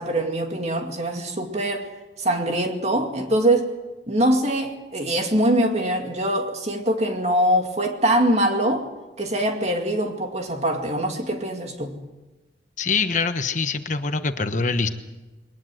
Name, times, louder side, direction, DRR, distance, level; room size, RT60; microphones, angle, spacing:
voice 1, 0.0-1.9 2.2-3.7 4.1-8.9 9.2-12.0, right 1 dB, 40° right, 2.4 m, -23 dB
voice 2, 12.8-14.9, left 4 dB, 45° left, 1.2 m, -24 dB
22.5 x 19.5 x 7.8 m
head